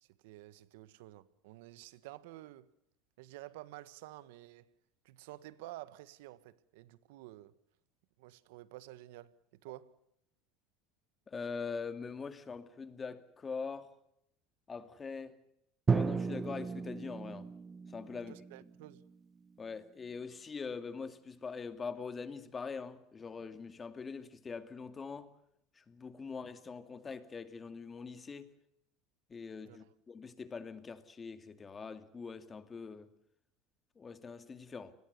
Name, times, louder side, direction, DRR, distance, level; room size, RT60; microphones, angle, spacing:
voice 1, 0.0-2.7 3.2-4.7 5.0-7.5 8.2-10.0 18.1-19.1 29.6-29.9, right 16 dB, 80° right, 1.5 m, -51 dB
voice 2, 11.3-13.9 14.7-15.4 15.9-17.5 17.9-18.3 19.6-25.3 25.8-28.5 29.3-33.1 34.0-34.9, left 5 dB, 25° left, 2.5 m, -43 dB
Drum, 15.9-19.7, right 5 dB, 25° right, 1.1 m, -35 dB
30.0 x 20.5 x 6.9 m
supercardioid pair, 110°, 0 cm